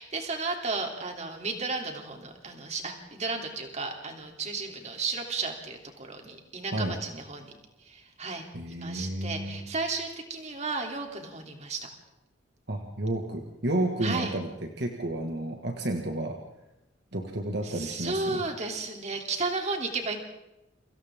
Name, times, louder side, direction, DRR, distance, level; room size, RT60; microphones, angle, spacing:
voice 1, 0.0-7.5 7.8-11.9 14.0-14.4 17.6-20.2, right 3 dB, 35° right, 3 dB, 3.3 m, -34 dB
voice 2, 8.5-9.6 12.7-16.4 17.1-18.4, right 1 dB, 60° right, 2 dB, 2.0 m, -31 dB
30.0 x 25.0 x 3.8 m, 0.94 s
head